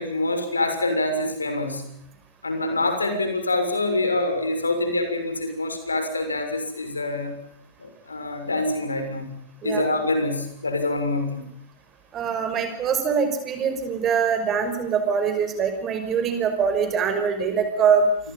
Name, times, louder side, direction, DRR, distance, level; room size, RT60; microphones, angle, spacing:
voice 1, 0.0-1.9 2.4-7.3 7.8-9.3 9.6-11.4, left 2 dB, 85° left, 7 dB, 6.5 m, -25 dB
voice 2, 12.1-18.1, right 6 dB, 30° right, 7 dB, 5.9 m, -23 dB
28.5 x 25.5 x 5.6 m, 0.73 s
figure-of-eight pair, 95°, 0 cm